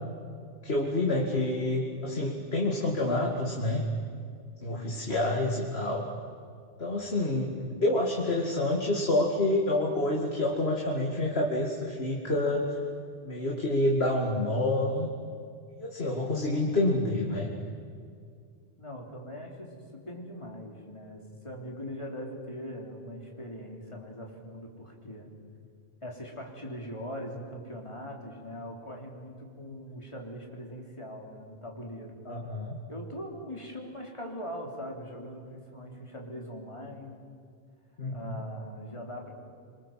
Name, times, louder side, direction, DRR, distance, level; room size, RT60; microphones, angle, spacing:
voice 1, 0.6-3.8 4.6-6.1 6.8-7.5 7.8-12.8 13.2-15.1 15.8-17.5 32.3-32.8 38.0-38.4, left 1 dB, 70° left, -1 dB, 2.8 m, -28 dB
voice 2, 18.8-25.3 26.0-32.2 32.9-37.2 38.1-39.3, equal, 30° left, 0 dB, 3.8 m, -41 dB
27.0 x 25.5 x 7.7 m, 2.2 s
omnidirectional pair, 1.1 m